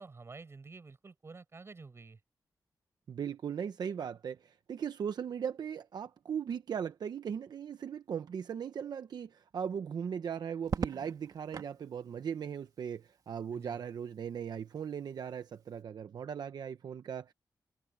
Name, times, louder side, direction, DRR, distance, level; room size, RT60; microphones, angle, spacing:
voice 1, 0.0-2.2 13.5-13.9, right 4 dB, 35° right, 7.9 m, -50 dB
voice 2, 3.1-17.3, right 7 dB, 75° right, 0.8 m, -38 dB
Crackle, 10.6-11.8 13.4-13.9, right 6 dB, 60° right, 1.6 m, -38 dB
wide cardioid pair, 130°, 7 cm